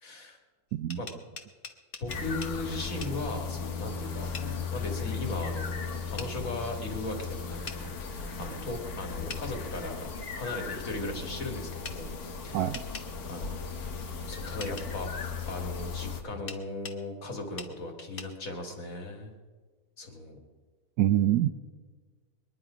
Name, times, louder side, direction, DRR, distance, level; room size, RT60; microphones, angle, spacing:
voice 1, 0.0-0.4 0.9-1.1 2.0-4.3 4.7-10.1 10.3-12.2 12.4-12.6 13.3-13.9 14.3-19.3 20.0-20.4, left 2 dB, 65° left, 3 dB, 2.5 m, -37 dB
sound 1, 0.7-2.6 3.0-3.2 4.3-4.5 6.2-6.3 7.7-7.8 9.3-9.4 11.8-12.0 12.7-13.1 14.6-14.9 16.5-17.0 17.6-17.7 18.2-18.3, left 4 dB, 40° left, 1.1 m, -41 dB
sound 2, 2.1-16.2, left 5 dB, 80° left, 1.7 m, -36 dB
voice 2, 21.0-21.5, right 12 dB, 85° right, 4 dB, 1.1 m, -25 dB
23.0 x 10.5 x 5.0 m, 1.4 s
omnidirectional pair, 1.6 m